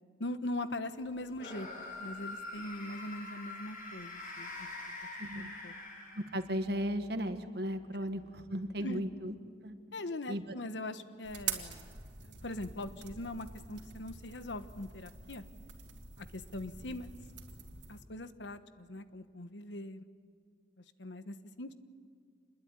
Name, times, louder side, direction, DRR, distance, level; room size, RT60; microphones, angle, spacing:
voice 1, 0.2-4.7 5.2-5.7 8.8-9.0 9.9-11.9 12.2-15.4 16.2-17.1 17.9-20.0 21.0-21.7, left 1 dB, 80° left, 11 dB, 1.3 m, -41 dB
sound 1, 1.3-6.6, left 2 dB, 45° left, 7.4 m, -44 dB
voice 2, 5.2-5.5 6.2-9.4 9.6-9.8 10.3-10.4, equal, 60° right, 8 dB, 1.7 m, -36 dB
sound 2, 11.2-18.0, right 7 dB, 80° right, 2.9 m, -45 dB
27.0 x 21.0 x 9.7 m, 2.1 s
head